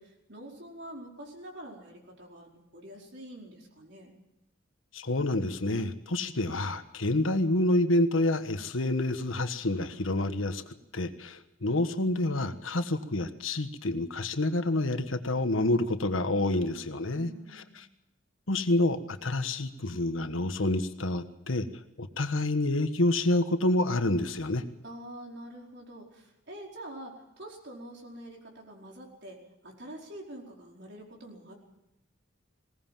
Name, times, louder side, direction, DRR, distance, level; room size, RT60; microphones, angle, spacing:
voice 1, 0.0-4.2 17.1-17.8 24.8-31.5, right 1 dB, 60° right, 0 dB, 4.8 m, -46 dB
voice 2, 4.9-10.6 10.9-17.3 17.7-17.8 18.5-21.7 22.0-24.6, left 2 dB, 90° left, 9 dB, 1.4 m, -28 dB
20.5 x 18.0 x 7.5 m, 0.92 s
head